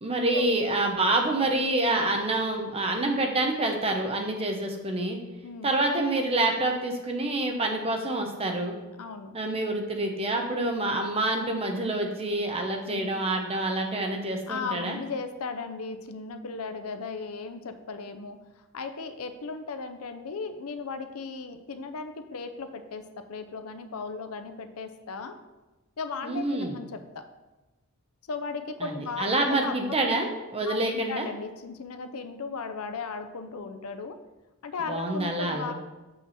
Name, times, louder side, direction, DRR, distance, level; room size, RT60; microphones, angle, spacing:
voice 1, 0.0-5.2 5.6-8.8 9.3-15.0 26.2-26.8 28.8-31.3 34.9-35.7, right 2 dB, 25° right, 3 dB, 0.9 m, -27 dB
voice 2, 9.0-9.3 12.8-13.1 14.5-18.4 18.7-23.0 23.3-25.3 26.0-27.2 28.3-29.3 29.6-29.7 30.6-34.2 34.6-35.7, left 4 dB, 75° left, 8 dB, 0.6 m, -36 dB
6.1 x 5.8 x 4.1 m, 1.1 s
head